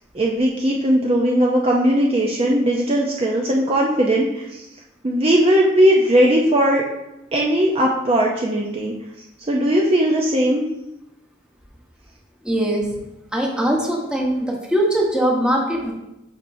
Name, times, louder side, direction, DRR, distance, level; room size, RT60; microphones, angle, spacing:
voice 1, 0.1-4.7 5.0-6.8 7.3-8.9 9.5-10.6, equal, 30° right, -2 dB, 0.6 m, -18 dB
voice 2, 12.4-12.9 13.3-15.9, right 1 dB, 5° right, -1 dB, 1.0 m, -21 dB
8.5 x 4.3 x 2.7 m, 0.91 s
head